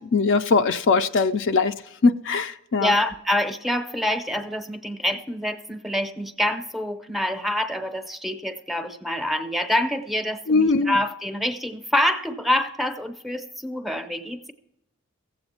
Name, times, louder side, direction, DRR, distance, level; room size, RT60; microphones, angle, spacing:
voice 1, 0.1-1.7 2.0-2.9 10.5-11.0, left 4 dB, 60° left, 9 dB, 0.4 m, -20 dB
voice 2, 2.8-14.5, left 1 dB, ahead, 8 dB, 0.6 m, -26 dB
15.5 x 7.9 x 4.3 m, 0.87 s
head